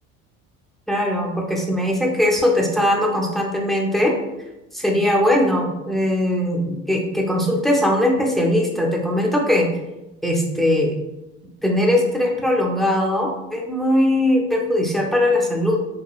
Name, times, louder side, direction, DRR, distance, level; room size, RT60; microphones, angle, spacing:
voice 1, 0.9-4.2 4.7-9.7 10.2-11.0 11.6-15.9, left 1 dB, ahead, -1 dB, 0.4 m, -20 dB
3.0 x 2.2 x 2.2 m, 0.99 s
supercardioid pair, 100°, 32 cm